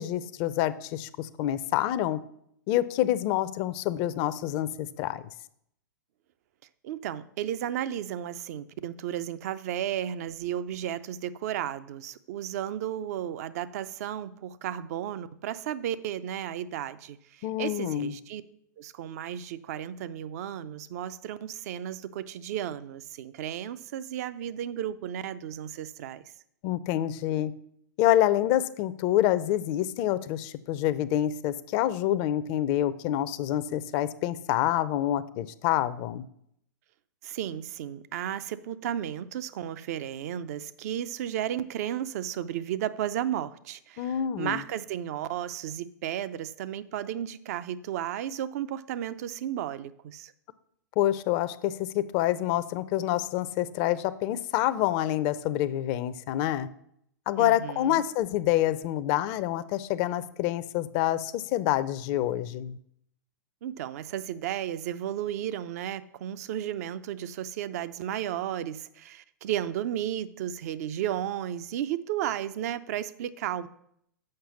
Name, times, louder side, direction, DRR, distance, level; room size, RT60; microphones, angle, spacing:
voice 1, 0.0-2.2 2.7-5.2 17.4-18.1 26.6-27.5 28.0-36.3 44.0-44.6 51.0-56.7 57.3-62.8, left 13 dB, 40° left, 14 dB, 0.5 m, -27 dB
voice 2, 6.8-18.4 18.8-26.2 37.2-50.3 57.4-58.0 63.6-73.7, right 11 dB, 55° right, 14 dB, 0.5 m, -34 dB
6.6 x 5.6 x 7.0 m, 0.72 s
hypercardioid pair, 110°, 10 cm